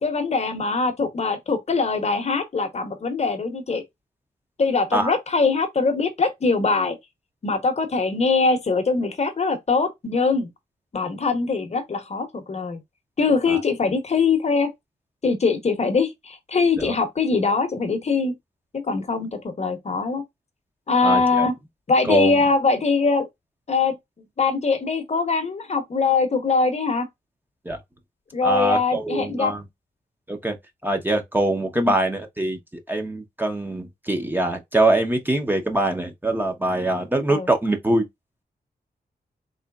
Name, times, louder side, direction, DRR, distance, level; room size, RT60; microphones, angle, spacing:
voice 1, 0.0-3.8 4.6-7.0 7.4-10.5 10.9-12.8 13.2-14.7 15.2-18.3 18.7-20.2 20.9-21.5 21.9-23.3 23.7-24.0 24.4-27.1 28.3-29.5 31.8-31.9 37.3-37.5, left 4 dB, 40° left, 0.8 m, -22 dB
voice 2, 21.0-21.5 22.1-22.4 27.6-27.8 28.4-29.6 30.3-30.5 30.8-38.1, right 1 dB, 10° right, 0.7 m, -23 dB
3.9 x 3.0 x 2.2 m
wide cardioid pair, 180°, 17 cm